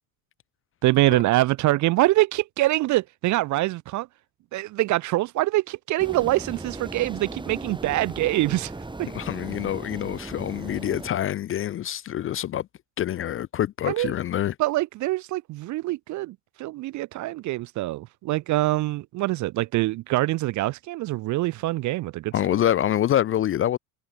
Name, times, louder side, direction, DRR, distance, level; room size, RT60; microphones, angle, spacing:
voice 1, 0.8-4.1 4.5-8.7 9.0-9.1 13.9-14.1 14.6-22.3, right 17 dB, 40° right, 0.4 m, -24 dB
sound 1, 6.0-11.1, right 2 dB, 10° right, 1.3 m, -37 dB
voice 2, 9.1-12.7 13.0-14.5 22.3-23.8, left 11 dB, 30° left, 0.4 m, -26 dB
hypercardioid pair, 55°, 47 cm